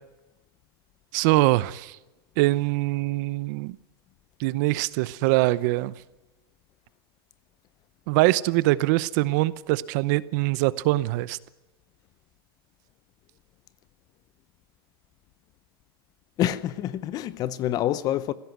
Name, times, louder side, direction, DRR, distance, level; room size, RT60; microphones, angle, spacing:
voice 1, 1.1-2.0 2.4-3.8 4.4-5.9 8.1-11.4, right 19 dB, 50° right, 0.8 m, -23 dB
voice 2, 16.4-18.3, left 12 dB, 30° left, 0.8 m, -27 dB
19.5 x 16.5 x 9.4 m
supercardioid pair, 155°, 13 cm